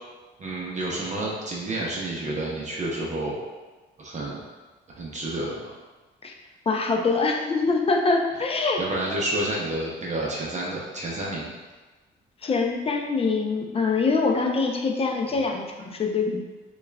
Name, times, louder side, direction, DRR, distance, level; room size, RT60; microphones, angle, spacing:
voice 1, 0.4-3.4 4.0-4.4 5.0-5.7 8.8-11.5, right 1 dB, 35° right, -4 dB, 0.7 m, -29 dB
voice 2, 6.7-8.8 12.4-16.4, left 4 dB, 30° left, 2 dB, 0.5 m, -24 dB
5.5 x 2.4 x 2.2 m, 1.3 s
cardioid pair, 90°, 20 cm